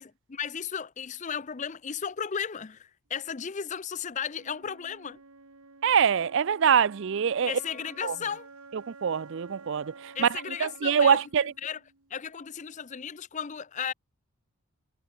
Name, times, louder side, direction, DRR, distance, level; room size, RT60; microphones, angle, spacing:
voice 1, 0.0-5.2 7.5-8.5 10.1-11.2 11.6-11.8 12.1-13.9, left 7 dB, 35° left, 0.5 m, -35 dB
Wind instrument woodwind instrument, 4.3-12.3, right 3 dB, 85° right, 2.1 m, -51 dB
voice 2, 5.8-7.6 8.0-8.2 8.7-11.5, right 7 dB, 55° right, 0.4 m, -24 dB
head